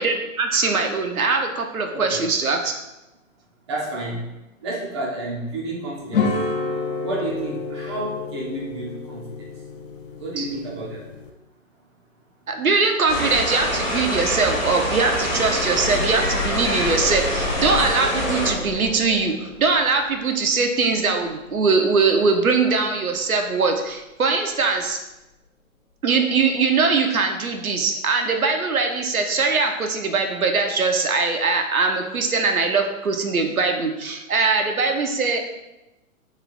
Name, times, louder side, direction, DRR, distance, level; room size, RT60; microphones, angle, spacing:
voice 1, 0.0-2.7 10.4-10.5 12.5-25.0 26.0-35.4, right 4 dB, 90° right, 4 dB, 0.6 m, -21 dB
voice 2, 1.9-2.3 3.7-4.3 4.6-6.3 7.0-9.5 10.2-11.1, right 2 dB, 20° right, -3 dB, 0.4 m, -30 dB
sound 1, 6.1-11.3, left 4 dB, 45° left, 0.4 m, -29 dB
sound 2, 13.1-18.5, equal, 20° left, 0.9 m, -25 dB
sound 3, 15.2-22.9 24.0-24.1 24.5-24.6, left 4 dB, 65° left, 0.8 m, -34 dB
3.1 x 2.4 x 3.8 m, 0.97 s
figure-of-eight pair, 120°, 41 cm